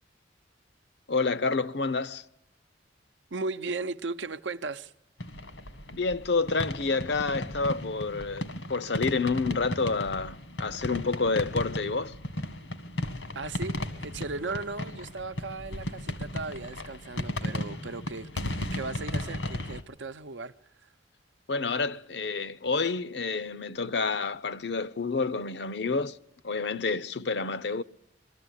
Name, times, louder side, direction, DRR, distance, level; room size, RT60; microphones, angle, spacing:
voice 1, 1.1-2.2 5.9-12.2 21.5-26.2 26.4-27.8, left 4 dB, 65° left, 0.7 m, -29 dB
voice 2, 3.3-4.9 13.3-20.9, right 3 dB, 80° right, 0.8 m, -37 dB
sound 1, 5.2-19.8, left 1 dB, 85° left, 1.8 m, -35 dB
22.5 x 14.0 x 9.9 m
head